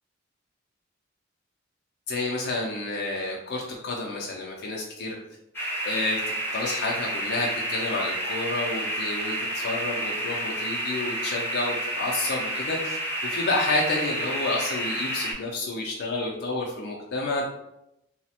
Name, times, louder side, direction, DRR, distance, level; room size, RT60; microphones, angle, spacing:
voice 1, 2.1-5.2 5.8-6.2 6.5-13.0 13.2-17.4, left 2 dB, 55° left, -2 dB, 0.4 m, -29 dB
sound 1, 5.5-15.3, right 1 dB, 10° left, 0.6 m, -30 dB
3.1 x 2.0 x 2.7 m, 0.84 s
head